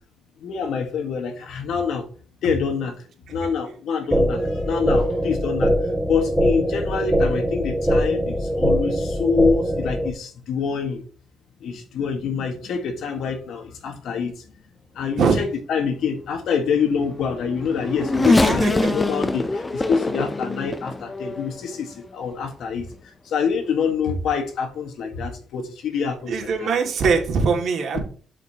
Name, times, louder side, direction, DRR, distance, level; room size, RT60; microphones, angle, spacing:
voice 1, 0.4-2.1 2.4-3.0 3.3-5.7 6.1-11.0 11.6-14.5 14.9-26.7 27.9-28.0, left 6 dB, 75° left, 1.5 m, -26 dB
sound 1, 4.1-10.1, equal, 10° right, 1.7 m, -22 dB
Race car auto racing / Accelerating revving vroom, 17.2-21.8 22.4-22.5 23.7-23.8, left 2 dB, 20° left, 0.6 m, -24 dB
voice 2, 18.2-18.9 26.3-28.0, right 5 dB, 65° right, 2.3 m, -22 dB
11.5 x 5.2 x 3.0 m
cardioid pair, 90°, 0 cm